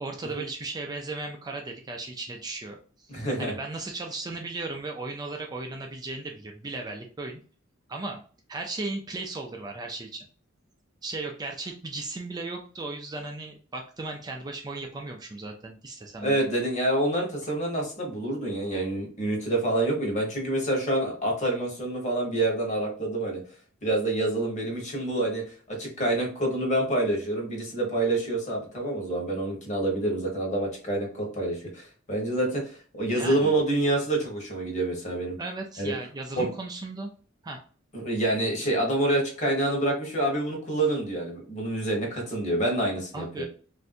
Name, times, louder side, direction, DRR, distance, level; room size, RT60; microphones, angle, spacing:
voice 1, 0.0-7.4 7.9-8.2 8.5-10.3 11.0-16.4 33.2-33.5 35.4-37.1 37.4-37.6 43.1-43.5, right 3 dB, 20° right, 2 dB, 0.4 m, -36 dB
voice 2, 3.1-3.6 16.2-23.4 23.8-35.4 35.8-35.9 36.4-36.5 37.9-43.5, right 1 dB, 35° left, 0 dB, 1.2 m, -27 dB
3.3 x 2.6 x 2.5 m, 0.42 s
head